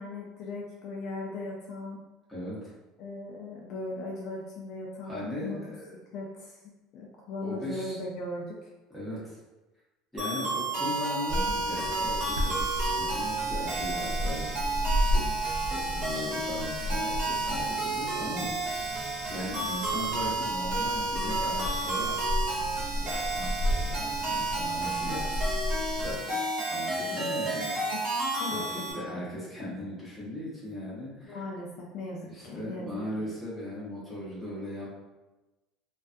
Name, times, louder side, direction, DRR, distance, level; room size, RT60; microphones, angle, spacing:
voice 1, 0.0-2.0 3.0-5.6 5.9-6.6 6.9-8.7 27.9-28.0 28.4-29.0 31.2-33.0, left 2 dB, 45° left, -2 dB, 0.3 m, -38 dB
voice 2, 2.3-2.7 5.0-6.0 7.4-8.0 8.9-9.4 10.1-14.5 15.0-15.3 15.7-22.2 22.9-25.5 26.0-26.4 26.7-28.1 28.4-31.4 32.2-34.9, left 1 dB, 5° left, -9 dB, 0.8 m, -38 dB
sound 1, 10.2-28.9, right 2 dB, 30° right, 0.8 m, -31 dB
sound 2, 11.3-26.2, equal, 75° right, 0.3 m, -33 dB
2.3 x 2.2 x 2.5 m, 1.1 s
cardioid pair, 170°, 0 cm